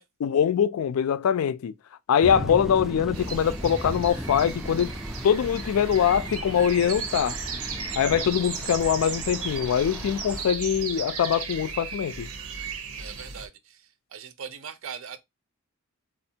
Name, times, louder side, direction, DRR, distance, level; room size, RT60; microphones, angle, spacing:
voice 1, 0.2-1.7 2.1-4.9 5.2-7.4 8.0-12.3, left 8 dB, 80° left, 0.3 m, -23 dB
sound 1, 2.2-10.5, equal, ahead, 0.3 m, -37 dB
sound 2, 3.1-13.5, right 6 dB, 90° right, 0.8 m, -36 dB
voice 2, 13.0-15.2, right 7 dB, 65° right, 0.5 m, -41 dB
4.2 x 2.4 x 2.7 m
head